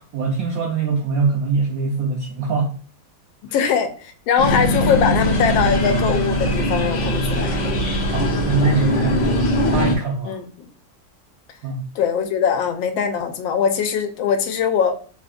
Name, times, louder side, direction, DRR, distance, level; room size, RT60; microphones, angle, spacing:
voice 1, 0.0-2.8 8.1-10.4 11.6-11.8, right 4 dB, 85° right, 0.7 m, -23 dB
voice 2, 3.5-7.6 10.2-10.4 11.9-15.0, left 7 dB, 80° left, 1.3 m, -21 dB
sound 1, 4.4-10.0, equal, 60° left, 0.8 m, -20 dB
3.6 x 2.6 x 2.4 m
omnidirectional pair, 2.2 m